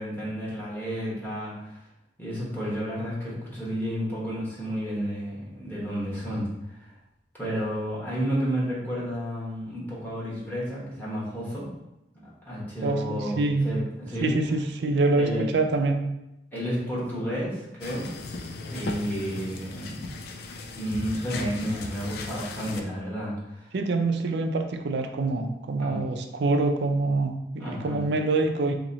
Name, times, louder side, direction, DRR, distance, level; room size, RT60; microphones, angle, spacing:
voice 1, 0.0-1.8 2.2-6.9 7.4-11.7 12.4-14.4 15.1-15.5 16.5-18.1 18.7-20.0 20.7-23.7 25.8-26.0 27.6-28.0, equal, 10° left, -7 dB, 1.2 m, -31 dB
voice 2, 12.8-13.7 14.2-16.0 23.7-28.7, right 3 dB, 65° right, 5 dB, 0.4 m, -25 dB
sound 1, 17.8-22.8, left 3 dB, 60° left, 0.4 m, -37 dB
3.0 x 2.8 x 4.0 m, 0.90 s
head